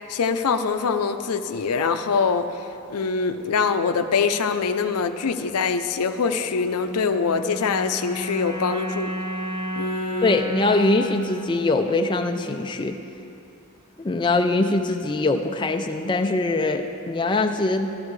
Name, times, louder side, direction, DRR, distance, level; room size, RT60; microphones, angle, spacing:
voice 1, 0.1-9.1 9.8-10.4, left 5 dB, 90° left, 9 dB, 0.5 m, -24 dB
sound 1, 6.8-13.2, left 1 dB, 85° right, 2.5 m, -33 dB
voice 2, 10.2-13.0 14.0-17.9, left 2 dB, 20° left, 5 dB, 0.4 m, -22 dB
13.0 x 12.5 x 3.2 m, 2.7 s
head